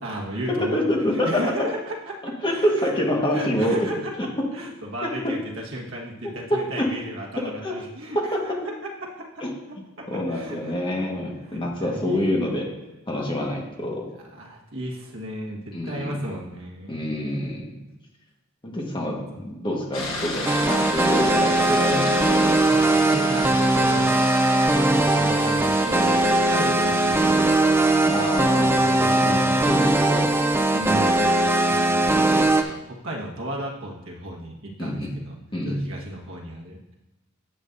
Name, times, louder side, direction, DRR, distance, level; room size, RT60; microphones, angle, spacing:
voice 1, 0.0-2.2 2.4-2.9 3.3-4.1 4.5-8.5 8.8-9.4 10.0-10.8 11.2-12.6 14.3-17.6 19.3-19.5 21.0-21.4 22.7-24.2 24.9-28.0 28.8-29.8 30.7-31.3 31.6-35.4 35.6-36.8, right 1 dB, 70° right, -1 dB, 1.4 m, -35 dB
voice 2, 0.6-1.4 2.4-3.8 4.2-4.3 5.0-5.3 6.2-6.9 7.6-7.7 8.1-8.6 9.4-9.5 10.1-12.7 13.1-14.1 15.7-16.2 16.9-17.7 18.6-22.5 28.0-28.8 29.1-30.4 34.8-35.1 35.5-35.9, left 1 dB, 25° left, -1 dB, 1.4 m, -26 dB
sound 1, 19.9-32.7, left 2 dB, 70° left, 1.3 m, -34 dB
sound 2, 20.4-32.6, right 2 dB, 10° right, 0.4 m, -20 dB
10.5 x 7.7 x 2.6 m, 1.0 s
head